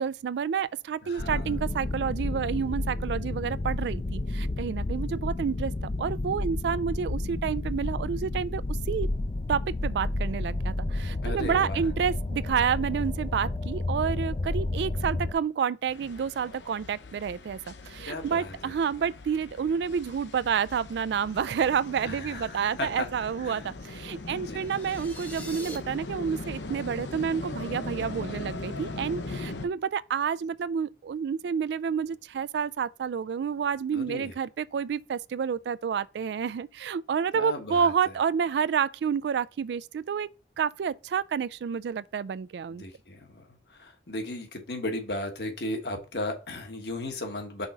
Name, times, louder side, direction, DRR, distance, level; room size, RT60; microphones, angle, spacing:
voice 1, 0.0-5.7 6.0-8.6 8.9-9.1 9.5-40.3 40.6-42.8, right 7 dB, 75° right, 0.3 m, -29 dB
voice 2, 1.0-1.5 11.2-11.8 18.0-18.7 22.0-23.1 23.4-23.6 24.3-24.7 29.3-29.7 33.9-34.3 37.3-37.9 42.7-43.4 43.7-47.7, left 1 dB, 70° left, 1.4 m, -36 dB
sound 1, 1.2-15.3, left 2 dB, 35° left, 0.5 m, -31 dB
sound 2, 15.9-29.7, left 2 dB, 90° left, 0.8 m, -40 dB
sound 3, 24.6-25.8, left 1 dB, 10° left, 0.9 m, -43 dB
5.6 x 3.9 x 4.4 m
head